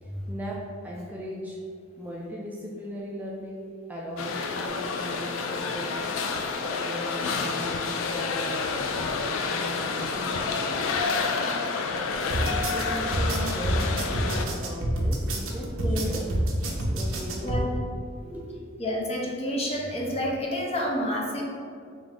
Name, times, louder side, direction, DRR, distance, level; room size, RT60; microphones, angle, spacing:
voice 1, 0.0-1.6 2.0-6.2 6.6-10.5 12.2-16.3 16.9-17.7 18.2-18.8, equal, 10° right, -4 dB, 0.3 m, -38 dB
sound 1, 4.2-14.5, left 4 dB, 75° left, 0.3 m, -29 dB
sound 2, 12.3-17.6, right 1 dB, 75° right, 0.6 m, -27 dB
voice 2, 15.8-16.1 16.6-16.7 17.4-17.7 18.8-21.4, equal, 30° left, -2 dB, 0.6 m, -29 dB
3.6 x 2.9 x 3.6 m, 2.3 s
head